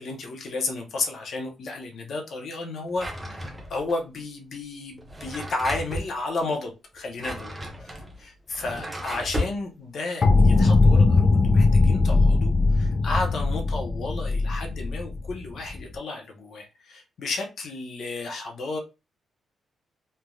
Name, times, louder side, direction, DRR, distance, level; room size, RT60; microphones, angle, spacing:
voice 1, 0.0-7.5 7.8-18.8, left 3 dB, 60° left, 0.8 m, -33 dB
Drawer open or close, 2.9-3.9 5.0-6.1 7.0-9.6, left 1 dB, 10° right, 0.7 m, -34 dB
sound 1, 10.2-15.9, left 3 dB, 35° left, 0.4 m, -20 dB
3.3 x 2.6 x 2.3 m
cardioid pair, 130°, 0 cm